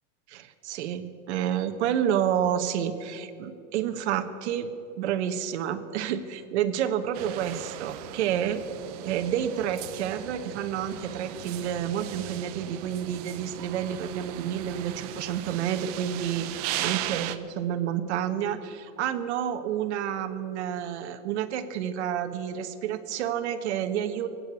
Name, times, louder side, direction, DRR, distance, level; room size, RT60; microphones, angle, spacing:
voice 1, 0.3-4.7 5.0-8.6 9.0-24.3, right 9 dB, 65° right, 8 dB, 1.3 m, -29 dB
sound 1, 7.1-17.4, right 13 dB, 35° right, 0.5 m, -37 dB
22.0 x 8.9 x 6.9 m, 2.6 s
supercardioid pair, 165°, 37 cm